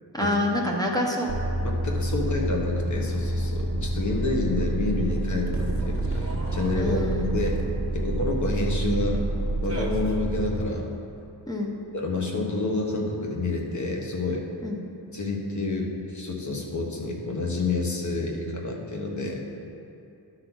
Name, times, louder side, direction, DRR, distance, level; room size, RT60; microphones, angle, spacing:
voice 1, 0.1-1.3 6.7-7.4 11.5-11.7 14.6-14.8, left 1 dB, 10° left, -3 dB, 0.8 m, -27 dB
sound 1, 1.3-10.6, right 1 dB, 35° right, 1.2 m, -28 dB
voice 2, 1.6-7.0 7.3-7.6 7.9-9.2 9.6-10.9 11.9-14.4 15.1-19.4, left 2 dB, 45° left, 0 dB, 1.3 m, -28 dB
11.5 x 4.0 x 6.2 m, 2.7 s
wide cardioid pair, 115°, 41 cm